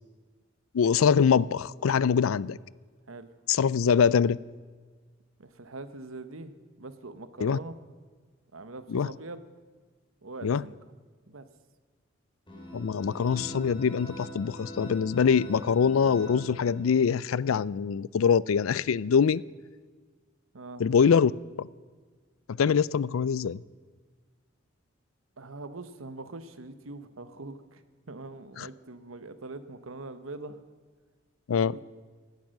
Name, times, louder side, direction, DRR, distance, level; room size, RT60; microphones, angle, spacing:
voice 1, 0.7-2.6 3.5-4.4 7.4-7.6 8.9-9.1 10.4-10.6 12.7-19.4 20.8-21.3 21.6-21.7 22.5-23.6 28.6-28.7 31.5-31.8, left 6 dB, 90° left, 22 dB, 0.4 m, -24 dB
voice 2, 5.4-6.5 6.8-7.8 8.5-9.4 10.2-10.8 11.3-11.5 20.5-20.8 25.4-27.8 28.1-30.6 31.5-31.8, right 2 dB, 85° right, 11 dB, 1.1 m, -42 dB
sound 1, 12.5-17.2, equal, 25° left, 4.0 m, -43 dB
17.0 x 12.0 x 6.5 m, 1.5 s
head